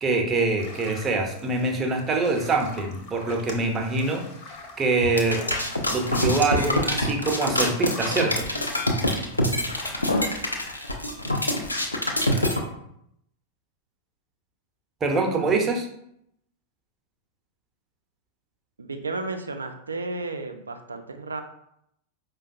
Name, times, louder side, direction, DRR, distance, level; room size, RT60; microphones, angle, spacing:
voice 1, 0.0-4.2 4.8-5.4 5.9-8.5 15.0-15.9, right 3 dB, 20° right, 2 dB, 0.6 m, -24 dB
sound 1, 0.6-10.7, left 3 dB, 45° left, 0.7 m, -43 dB
sound 2, 5.0-12.6, left 1 dB, 85° left, 0.4 m, -25 dB
voice 2, 18.8-21.4, right 3 dB, 75° right, 6 dB, 0.4 m, -33 dB
4.9 x 2.2 x 2.5 m, 0.75 s
figure-of-eight pair, 90°, 0 cm